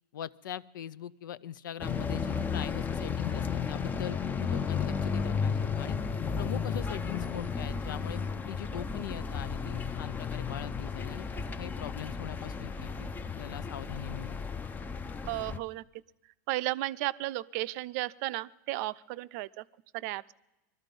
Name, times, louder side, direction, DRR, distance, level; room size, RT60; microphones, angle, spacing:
voice 1, 0.1-6.0 6.3-11.3 11.6-13.1 13.3-14.4, left 10 dB, 85° left, 18 dB, 0.5 m, -41 dB
sound 1, 1.8-15.6, left 6 dB, 15° left, 0.5 m, -33 dB
voice 2, 15.3-15.8 16.5-19.6 19.9-20.3, right 18 dB, 55° right, 16 dB, 0.5 m, -34 dB
20.5 x 13.0 x 5.3 m, 1.0 s
supercardioid pair, 125°, 10 cm